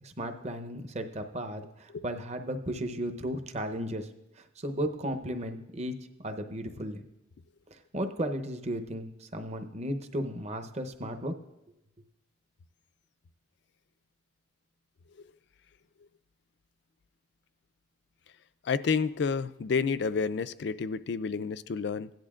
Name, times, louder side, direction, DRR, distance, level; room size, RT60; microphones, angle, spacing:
voice 1, 0.0-4.1 4.4-7.0 7.7-11.3, equal, 35° right, 7 dB, 0.8 m, -35 dB
voice 2, 18.6-22.1, left 5 dB, 60° left, 14 dB, 0.4 m, -30 dB
17.0 x 10.5 x 2.5 m, 0.91 s
head